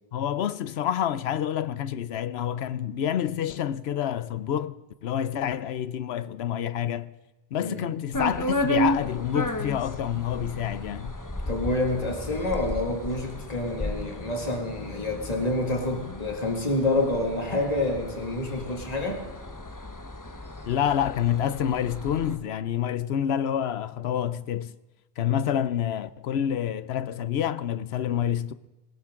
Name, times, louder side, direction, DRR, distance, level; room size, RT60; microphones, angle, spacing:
voice 1, 0.1-4.8 5.0-7.1 7.5-11.1 20.7-24.7 25.2-28.5, left 9 dB, 90° left, 0.9 m, -28 dB
sound 1, 8.1-22.4, left 1 dB, 20° left, 1.0 m, -33 dB
voice 2, 11.5-19.2, left 2 dB, 40° left, 2.2 m, -28 dB
20.5 x 18.0 x 3.7 m
omnidirectional pair, 1.0 m